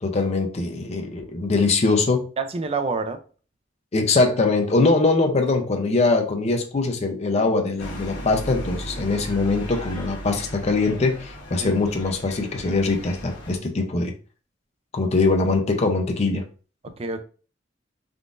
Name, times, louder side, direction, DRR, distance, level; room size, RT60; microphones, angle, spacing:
voice 1, 0.0-2.3 3.9-14.1 14.9-16.5, left 3 dB, 35° left, 0.5 m, -22 dB
voice 2, 2.4-3.2 11.6-11.7 16.8-17.2, right 4 dB, 30° right, 0.4 m, -27 dB
sound 1, 7.8-13.6, equal, 65° left, 1.1 m, -36 dB
3.6 x 2.4 x 2.4 m
head